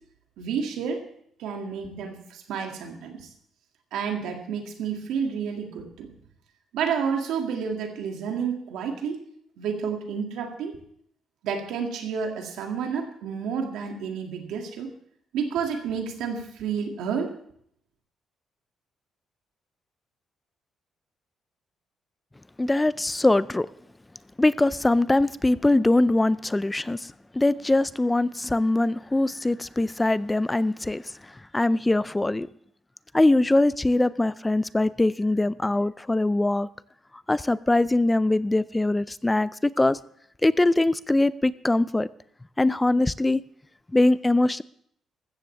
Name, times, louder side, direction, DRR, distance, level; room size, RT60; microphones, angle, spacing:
voice 1, 0.4-1.0 1.4-3.3 3.9-6.1 6.7-9.2 9.6-10.8 11.4-14.9 15.3-17.3, right 6 dB, 90° right, 2.2 m, -30 dB
voice 2, 22.6-23.7 24.4-27.0 27.4-31.0 31.5-32.5 33.1-36.7 37.3-40.0 40.4-42.1 42.6-43.4 43.9-44.6, left 2 dB, 15° left, 0.4 m, -22 dB
14.5 x 14.5 x 3.4 m
cardioid pair, 90°, 0 cm